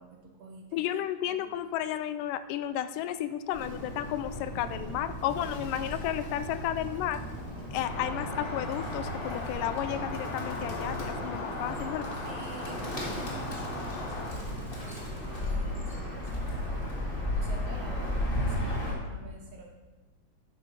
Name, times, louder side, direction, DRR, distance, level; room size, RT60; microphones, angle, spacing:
voice 1, 0.0-1.0 1.2-1.4 12.2-19.7, right 4 dB, 65° right, 2 dB, 1.7 m, -49 dB
voice 2, 0.7-7.2 7.7-12.2, left 11 dB, 90° left, 13 dB, 2.2 m, -33 dB
Bird, 3.5-18.9, left 1 dB, 25° left, 1.5 m, -35 dB
sound 1, 7.8-14.3, left 2 dB, 70° left, 3.4 m, -37 dB
11.0 x 9.9 x 4.0 m, 1.3 s
omnidirectional pair, 3.7 m